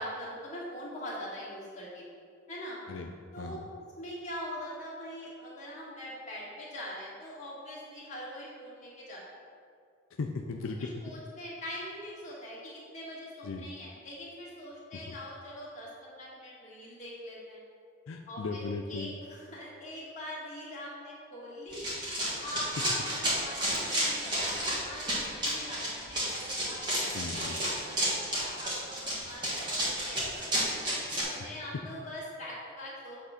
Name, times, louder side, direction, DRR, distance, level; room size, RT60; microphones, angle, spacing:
voice 1, 0.0-2.0 2.5-2.8 3.3-3.6 4.0-9.2 10.8-17.6 18.3-18.6 18.9-21.9 22.3-27.2 27.7-30.5 31.1-33.2, left 1 dB, 35° left, -6 dB, 1.9 m, -42 dB
voice 2, 2.9-3.7 10.2-10.9 13.4-13.7 14.9-15.2 18.1-19.1 27.1-27.6 31.3-31.5 31.7-31.8, left 4 dB, 85° left, 3 dB, 0.4 m, -37 dB
Run, 21.7-31.2, equal, 20° right, 1.6 m, -31 dB
7.8 x 3.6 x 5.8 m, 2.2 s
head